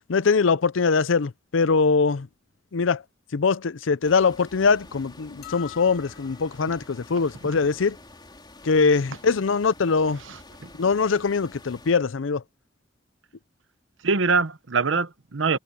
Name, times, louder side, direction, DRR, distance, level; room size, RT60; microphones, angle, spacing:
voice 1, 0.1-2.3 2.7-3.0 3.3-8.0 8.6-10.2 10.8-12.4, left 4 dB, 85° left, 0.6 m, -22 dB
sound 1, 4.0-11.9, left 2 dB, 25° left, 4.0 m, -48 dB
sound 2, 5.4-6.8, left 14 dB, 55° left, 3.9 m, -44 dB
voice 2, 10.2-10.7 14.0-15.6, right 4 dB, 80° right, 0.9 m, -24 dB
head